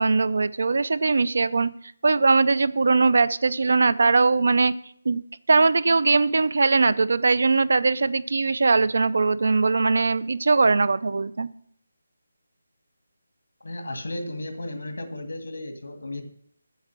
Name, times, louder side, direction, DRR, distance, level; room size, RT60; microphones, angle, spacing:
voice 1, 0.0-1.7 2.0-4.8 5.1-5.2 5.5-11.5, right 3 dB, 55° right, 17 dB, 0.5 m, -20 dB
voice 2, 13.6-16.2, left 1 dB, 85° left, 7 dB, 2.0 m, -34 dB
7.9 x 6.7 x 7.3 m, 0.66 s
hypercardioid pair, 180°, 0 cm